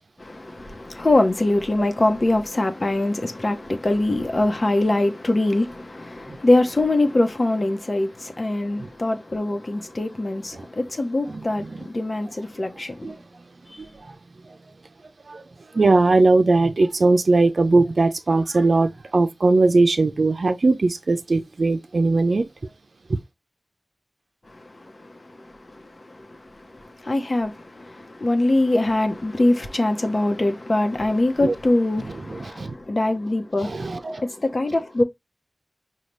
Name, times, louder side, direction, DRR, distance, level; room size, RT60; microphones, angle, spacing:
voice 1, 0.2-13.2 24.5-35.0, left 2 dB, 50° left, 0.9 m, -23 dB
voice 2, 11.3-11.8 13.0-13.2 13.8-14.1 14.4-14.6 15.3-15.4 15.7-22.5 23.1-23.2 31.4-31.5 32.3-32.7 33.6-34.2, right 3 dB, 75° right, 0.5 m, -20 dB
5.3 x 2.3 x 3.1 m
wide cardioid pair, 60°, 0 cm